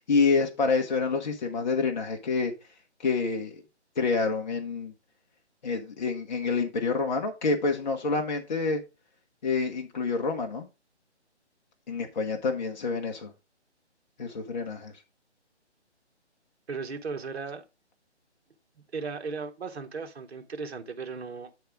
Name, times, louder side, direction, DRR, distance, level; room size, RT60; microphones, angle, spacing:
voice 1, 0.1-2.5 3.0-3.5 4.0-4.9 5.6-8.8 9.4-10.7 11.9-13.3 14.2-14.9, left 4 dB, 40° left, 1.0 m, -27 dB
voice 2, 16.7-17.6 18.9-21.5, right 4 dB, 60° right, 1.2 m, -36 dB
8.5 x 3.5 x 4.8 m
figure-of-eight pair, 155°, 35 cm